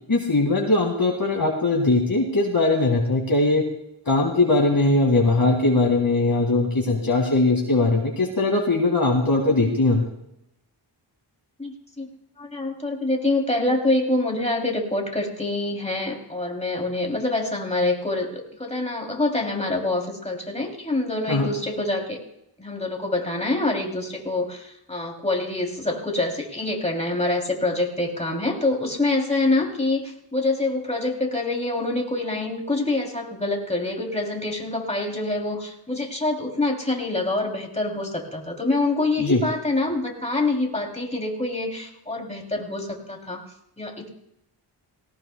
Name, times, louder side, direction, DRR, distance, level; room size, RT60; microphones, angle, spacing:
voice 1, 0.1-3.6 4.1-10.1 21.3-21.5 39.2-39.4, left 2 dB, 45° left, 0 dB, 2.0 m, -20 dB
voice 2, 11.6-12.1 12.4-22.2 22.6-43.4 43.8-44.1, left 2 dB, 15° left, 1 dB, 2.8 m, -26 dB
19.0 x 18.0 x 2.2 m, 0.79 s
wide cardioid pair, 90°, 47 cm